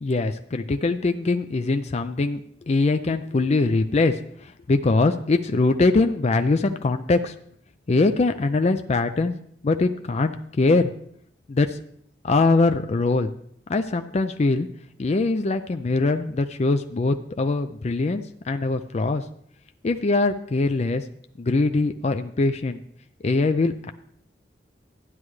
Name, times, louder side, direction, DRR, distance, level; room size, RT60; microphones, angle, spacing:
voice 1, 0.0-2.4 2.7-7.3 7.9-9.3 9.6-10.9 11.5-11.8 12.2-13.3 13.7-14.7 15.0-19.2 19.8-21.0 21.4-22.8 23.2-23.9, left 3 dB, 40° left, 7 dB, 0.4 m, -22 dB
12.5 x 9.7 x 3.2 m, 0.66 s
head